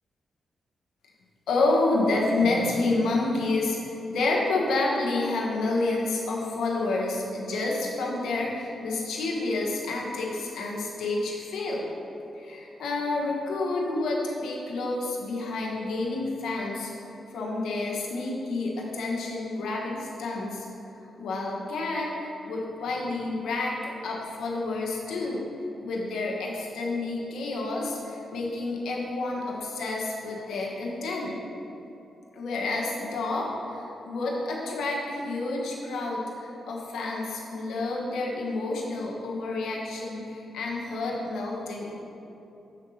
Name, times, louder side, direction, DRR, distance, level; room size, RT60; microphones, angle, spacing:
voice 1, 1.5-11.9 12.3-16.9 17.3-20.7 21.2-23.7 24.0-25.4 25.8-31.4 32.3-42.0, left 2 dB, 85° left, -2 dB, 1.2 m, -29 dB
7.3 x 3.9 x 6.3 m, 3.0 s
cardioid pair, 65°, 0 cm